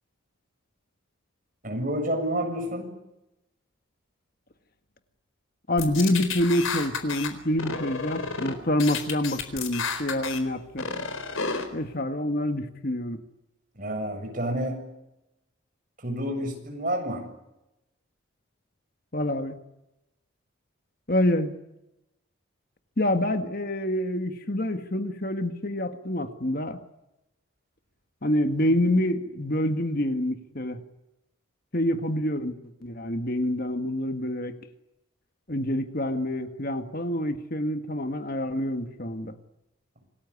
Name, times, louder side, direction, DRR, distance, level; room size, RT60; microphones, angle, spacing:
voice 1, 1.6-2.9 13.7-14.8 16.0-17.2, right 1 dB, 40° right, 4 dB, 7.5 m, -29 dB
voice 2, 5.7-10.9 11.7-13.2 19.1-19.6 21.1-21.5 23.0-26.8 28.2-30.8 31.7-32.6 32.8-34.6 35.5-39.3, left 1 dB, 45° left, 8 dB, 1.8 m, -27 dB
sound 1, 5.8-7.3 7.6-8.5 8.8-10.4 10.8-11.6, left 5 dB, 85° left, 4.3 m, -31 dB
27.5 x 19.5 x 9.9 m, 0.91 s
head